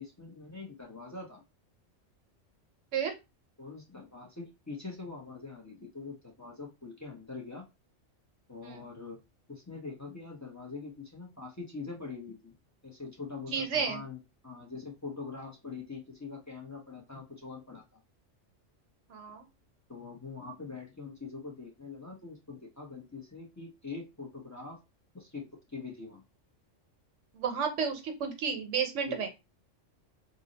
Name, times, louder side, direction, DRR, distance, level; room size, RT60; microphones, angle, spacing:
voice 1, 0.0-1.4 3.6-7.7 8.5-9.2 9.5-12.5 12.8-17.8 19.9-24.8 25.1-26.2 29.1-29.3, left 4 dB, 20° left, -1 dB, 0.5 m, -43 dB
voice 2, 13.5-14.0 19.1-19.4 27.3-29.3, right 6 dB, 70° right, 5 dB, 1.0 m, -32 dB
2.7 x 2.0 x 3.8 m, 0.25 s
omnidirectional pair, 1.3 m